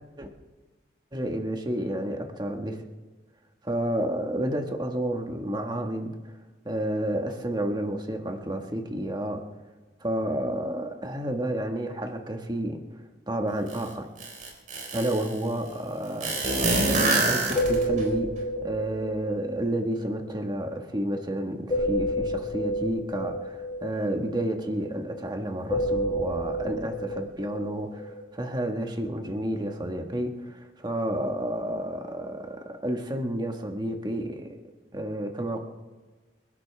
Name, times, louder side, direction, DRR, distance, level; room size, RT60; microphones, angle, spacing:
voice 1, 1.1-2.8 3.6-6.3 6.6-9.5 10.0-12.8 13.3-14.1 14.9-34.6 34.9-35.6, right 1 dB, 25° right, 4 dB, 1.5 m, -30 dB
sound 1, 13.7-13.8 14.2-15.3 16.2-18.0, right 2 dB, 50° right, 3.9 m, -25 dB
sound 2, 17.6-20.8 21.7-25.4 25.7-28.2, equal, 30° left, 5.5 m, -30 dB
29.0 x 11.5 x 3.5 m, 1.3 s
head